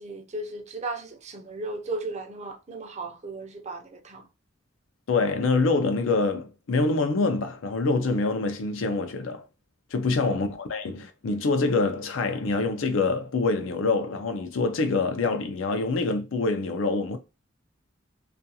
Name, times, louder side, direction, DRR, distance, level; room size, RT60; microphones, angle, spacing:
voice 1, 0.0-4.3, right 2 dB, 35° right, 0.5 m, -36 dB
voice 2, 5.1-9.4 9.9-17.2, left 3 dB, 80° left, 0.5 m, -25 dB
2.4 x 2.3 x 2.7 m
head